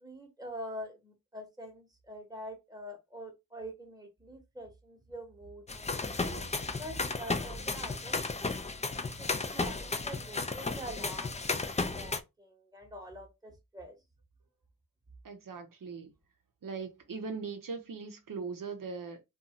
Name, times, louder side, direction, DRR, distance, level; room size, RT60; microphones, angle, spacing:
voice 1, 0.0-5.6 6.0-8.6 9.2-14.0, equal, 10° right, 0.9 m, -45 dB
sound 1, 5.7-12.2, left 3 dB, 20° left, 0.3 m, -34 dB
voice 2, 15.2-16.1 16.6-19.2, right 5 dB, 75° right, 0.6 m, -40 dB
2.6 x 2.3 x 2.8 m
wide cardioid pair, 65°, 33 cm